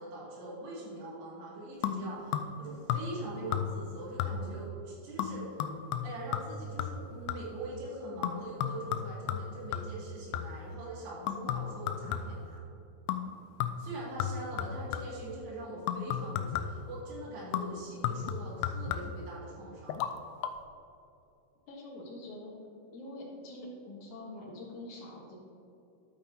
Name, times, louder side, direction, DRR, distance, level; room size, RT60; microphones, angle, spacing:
voice 1, 0.0-5.6 6.0-12.6 13.8-20.0, right 1 dB, 80° right, -6 dB, 4.3 m, -42 dB
sound 1, 1.8-2.6 2.9-3.3 3.5-3.9 4.2-4.6 5.2-7.6 8.2-10.7 11.3-12.5 13.1-13.3 13.6-15.3 15.9-16.9 17.5-19.3 19.9-20.1 20.4-20.5, left 8 dB, 80° left, 2.3 m, -35 dB
voice 2, 21.7-22.5 22.9-25.4, left 1 dB, 60° left, -2 dB, 2.2 m, -45 dB
12.0 x 8.8 x 2.8 m, 2.7 s
omnidirectional pair, 4.8 m